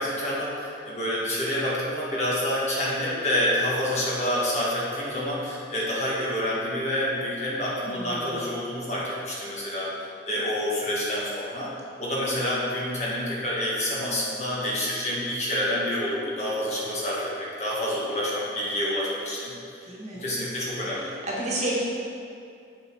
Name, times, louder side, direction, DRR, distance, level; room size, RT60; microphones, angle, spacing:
voice 1, 0.0-9.9 10.2-11.7 12.0-19.9 20.1-21.1, left 1 dB, 40° left, -6 dB, 1.8 m, -28 dB
voice 2, 7.8-8.4 19.8-20.2 20.9-21.8, right 1 dB, 40° right, -5 dB, 1.5 m, -31 dB
7.6 x 6.5 x 4.7 m, 2.5 s
head